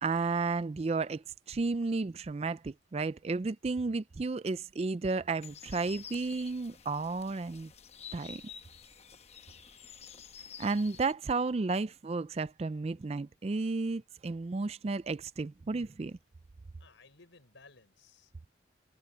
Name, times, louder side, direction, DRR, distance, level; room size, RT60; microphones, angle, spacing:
voice 1, 0.0-7.7 8.1-8.4 10.6-16.2, right 3 dB, 35° right, 0.4 m, -33 dB
sound 1, 5.4-11.1, left 7 dB, 35° left, 1.0 m, -50 dB
voice 2, 16.8-18.5, left 4 dB, 90° left, 5.9 m, -59 dB
head